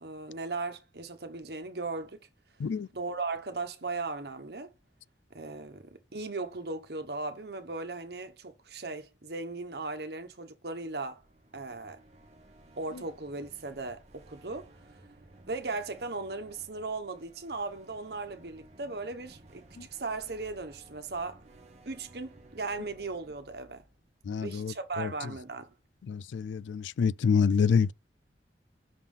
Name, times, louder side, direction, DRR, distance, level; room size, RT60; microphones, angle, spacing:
voice 1, 0.0-2.2 2.9-4.7 5.3-11.2 11.5-12.0 12.8-14.7 15.5-19.6 19.9-21.4 21.9-23.8 24.4-25.7, right 3 dB, 60° right, 1.1 m, -37 dB
sound 1, 11.1-25.0, right 1 dB, 40° right, 1.1 m, -57 dB
voice 2, 24.3-25.1 26.1-27.9, left 6 dB, 90° left, 0.4 m, -27 dB
5.8 x 3.6 x 5.5 m
head